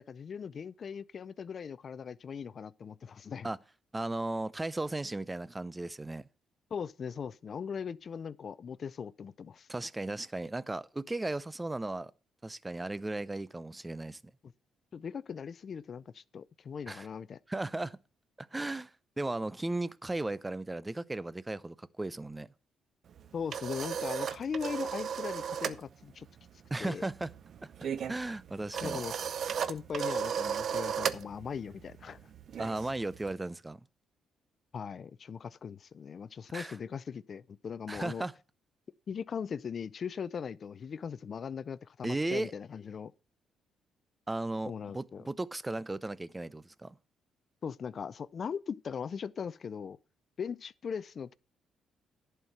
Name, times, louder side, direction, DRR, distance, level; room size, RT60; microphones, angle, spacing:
voice 1, 0.0-3.5 6.7-9.7 14.9-17.4 23.3-26.3 26.8-27.0 28.8-29.1 29.7-32.2 34.7-38.2 39.1-43.1 44.6-45.3 47.6-50.0 50.4-51.3, left 6 dB, 50° left, 0.4 m, -39 dB
voice 2, 3.9-6.2 9.7-12.1 12.4-14.2 16.9-17.1 17.5-18.0 18.4-18.9 19.2-22.5 26.7-27.3 27.8-29.0 32.6-33.8 36.5-36.8 37.9-38.3 42.0-42.5 44.3-46.9, right 2 dB, 15° right, 0.5 m, -36 dB
sound 1, 23.1-25.8 26.1-26.4 26.6-33.3, right 7 dB, 60° right, 0.6 m, -35 dB
11.0 x 4.5 x 7.8 m
cardioid pair, 90°, 0 cm